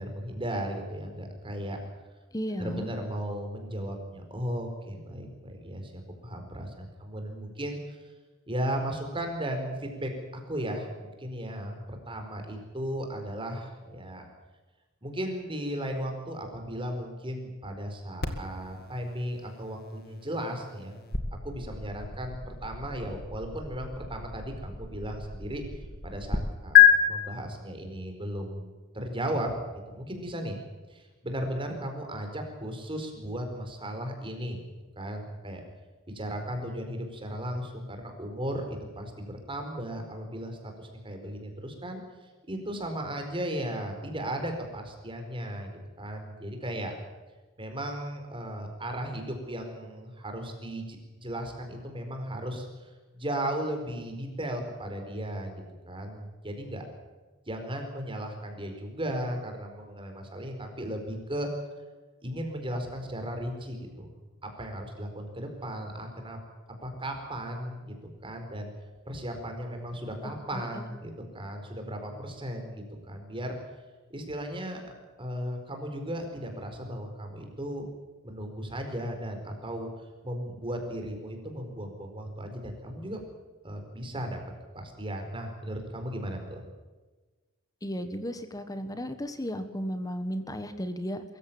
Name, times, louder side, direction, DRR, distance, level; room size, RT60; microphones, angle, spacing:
voice 1, 0.0-1.8 2.6-8.0 8.5-14.2 15.0-21.0 21.4-25.6 26.0-28.7 28.9-29.5 29.9-30.6 30.9-34.6 35.0-35.6 36.1-42.0 42.5-45.7 46.0-46.9 47.6-52.7 53.1-56.8 57.5-61.5 62.2-64.1 64.4-66.4 66.8-67.9 68.2-68.7 69.1-73.6 74.1-74.8 75.2-77.9 78.2-79.9 80.2-83.2 83.6-84.4 84.7-86.6, right 1 dB, 25° right, 4 dB, 4.6 m, -36 dB
voice 2, 2.3-2.9 70.5-70.9 87.8-91.2, equal, 15° left, 10 dB, 1.5 m, -34 dB
sound 1, 18.2-26.4 26.8-26.9, left 11 dB, 50° left, 2.2 m, -27 dB
23.5 x 15.0 x 8.8 m, 1.3 s
head